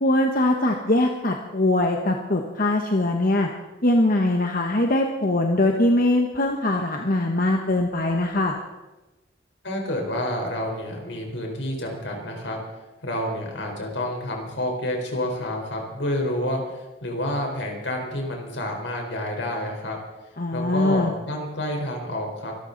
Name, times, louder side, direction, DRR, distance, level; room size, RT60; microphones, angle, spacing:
voice 1, 0.0-3.5 3.8-8.5 20.4-21.1, left 1 dB, 50° left, 2 dB, 1.3 m, -22 dB
voice 2, 9.6-12.6 13.0-20.0 20.5-22.5, left 1 dB, 75° left, 1 dB, 4.4 m, -29 dB
24.5 x 13.0 x 4.1 m, 1.1 s
head